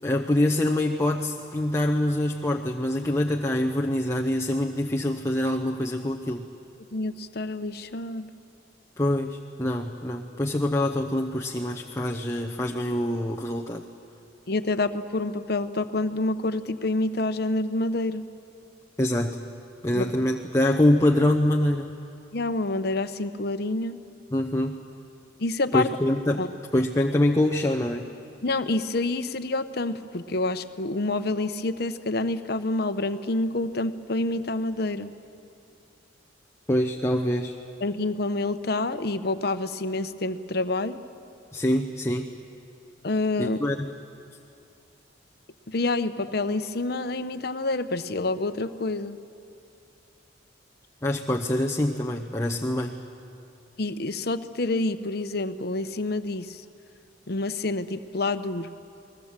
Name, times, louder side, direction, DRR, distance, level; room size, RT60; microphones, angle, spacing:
voice 1, 0.0-6.5 9.0-13.8 19.0-19.4 19.8-21.9 24.3-24.8 25.7-26.4 26.7-28.1 36.7-37.5 41.5-42.3 43.4-43.9 51.0-53.0, left 1 dB, 15° left, 0 dB, 0.8 m, -25 dB
voice 2, 6.9-8.3 14.5-18.2 19.9-20.1 22.3-24.0 25.4-25.9 26.4-26.5 28.4-35.1 37.8-41.0 43.0-43.6 45.7-49.2 53.8-56.6 57.3-58.7, left 2 dB, 55° left, 10 dB, 0.9 m, -27 dB
29.5 x 20.5 x 7.4 m, 2.6 s
head